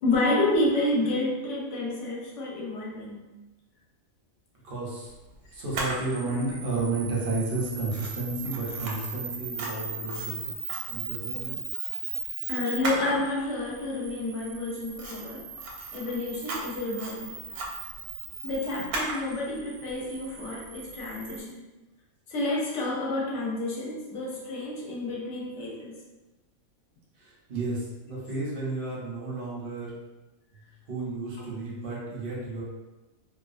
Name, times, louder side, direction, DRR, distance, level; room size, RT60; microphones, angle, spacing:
voice 1, 0.0-3.2 12.5-15.4 15.9-17.4 18.4-21.6 22.3-26.0, left 2 dB, 65° left, -3 dB, 0.9 m, -29 dB
voice 2, 4.6-5.1 5.5-10.4 10.9-11.6 27.2-29.9 30.9-32.6, right 3 dB, 50° right, -5 dB, 0.7 m, -32 dB
Camera, 5.7-21.4, right 3 dB, 85° right, 1.0 m, -36 dB
2.4 x 2.3 x 2.4 m, 1.1 s
omnidirectional pair, 1.5 m